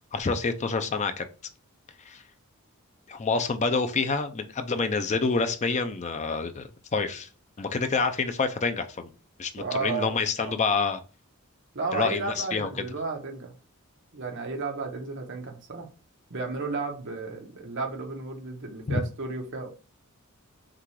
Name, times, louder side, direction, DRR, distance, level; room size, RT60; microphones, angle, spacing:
voice 1, 0.1-1.2 2.0-2.2 3.1-7.3 7.6-9.1 9.4-11.0 11.9-12.7 18.9-19.0, left 4 dB, 30° left, 9 dB, 0.5 m, -27 dB
voice 2, 9.6-10.6 11.7-13.6 14.1-15.9 16.3-19.7, right 4 dB, 55° right, 3 dB, 1.0 m, -33 dB
5.8 x 2.4 x 3.2 m, 0.36 s
head